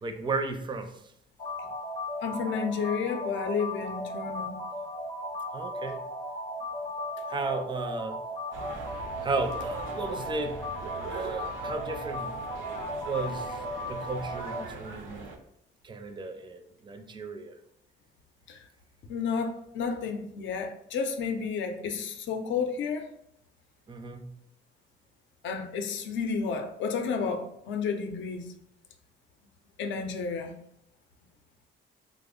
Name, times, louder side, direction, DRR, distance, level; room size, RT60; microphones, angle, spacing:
voice 1, 0.0-1.1 1.7-1.8 5.5-6.0 7.3-8.2 9.2-10.6 11.1-12.3 13.0-13.6 13.9-15.3 15.8-17.6 23.9-24.3, right 3 dB, 25° right, 7 dB, 0.4 m, -34 dB
sound 1, 1.4-14.6, left 1 dB, 25° left, 0.5 m, -36 dB
voice 2, 2.2-4.6 18.5-18.6 19.1-23.1 25.4-28.5 29.8-30.5, left 5 dB, 70° left, 5 dB, 0.5 m, -31 dB
sound 2, 8.5-15.4, right 3 dB, 85° right, 0.5 m, -41 dB
3.3 x 2.0 x 3.6 m, 0.73 s
cardioid pair, 90°, 20 cm